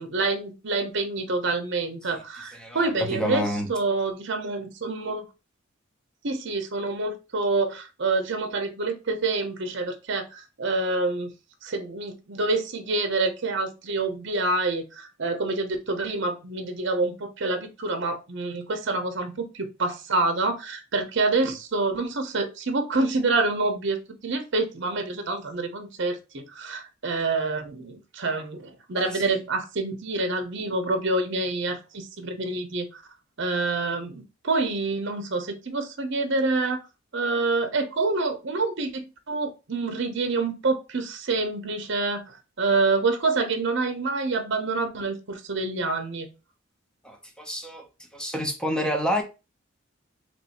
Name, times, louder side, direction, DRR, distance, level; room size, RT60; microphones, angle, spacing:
voice 1, 0.0-5.3 6.2-11.3 11.6-33.0 33.4-36.8 37.1-46.3, right 3 dB, 65° right, 0.8 m, -27 dB
voice 2, 2.5-3.7 29.0-29.3 47.0-47.9 48.1-49.2, equal, 5° left, 0.8 m, -29 dB
3.1 x 2.7 x 4.1 m
head